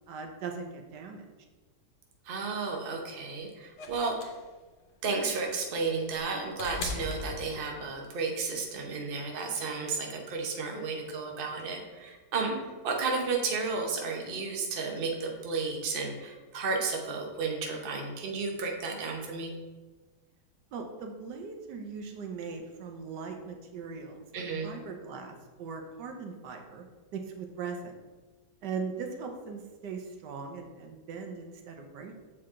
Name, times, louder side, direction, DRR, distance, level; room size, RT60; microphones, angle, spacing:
voice 1, 0.1-1.2 20.7-26.8 27.1-28.0 28.6-32.2, right 5 dB, 75° right, 4 dB, 1.4 m, -40 dB
voice 2, 2.2-4.3 5.0-19.5 24.3-24.7, right 4 dB, 40° right, 1 dB, 0.9 m, -33 dB
sound 1, 3.8-8.1 9.3-9.4, left 3 dB, 85° left, 1.5 m, -40 dB
7.1 x 4.7 x 3.7 m, 1.3 s
omnidirectional pair, 1.9 m